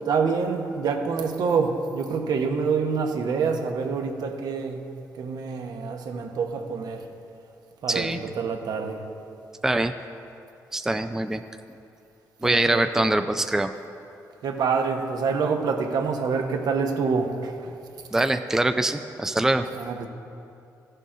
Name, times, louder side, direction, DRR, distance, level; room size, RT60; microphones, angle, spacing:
voice 1, 0.1-4.9 5.1-7.0 7.8-9.0 12.4-13.1 14.4-17.7 19.7-20.1, right 5 dB, 70° right, 4 dB, 0.9 m, -26 dB
voice 2, 7.9-8.2 9.6-9.9 10.7-11.4 12.4-13.7 18.1-19.7, right 2 dB, 5° right, 8 dB, 0.4 m, -23 dB
15.0 x 6.7 x 3.7 m, 2.6 s
cardioid pair, 70°, 7 cm